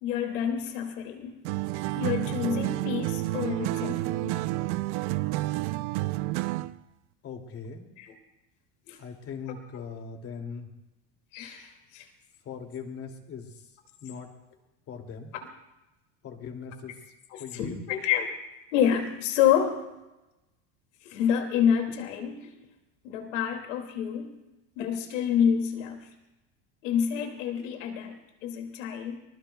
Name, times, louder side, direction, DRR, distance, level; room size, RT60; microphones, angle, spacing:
voice 1, 0.0-1.4 2.0-4.4 8.0-8.1 8.9-9.0 11.3-12.1 17.3-18.3 18.7-19.8 21.1-22.5 23.0-24.3 24.8-26.0 26.8-28.2 28.4-29.2, left 8 dB, 90° left, 3 dB, 2.5 m, -28 dB
sound 1, 1.4-6.8, right 18 dB, 75° right, 0.6 m, -30 dB
voice 2, 7.2-7.9 9.0-10.7 12.4-13.7 14.0-14.3 14.9-15.3 16.2-16.9 17.4-17.9, left 6 dB, 40° left, 3 dB, 2.6 m, -40 dB
24.0 x 20.5 x 2.3 m, 1.0 s
supercardioid pair, 130°, 36 cm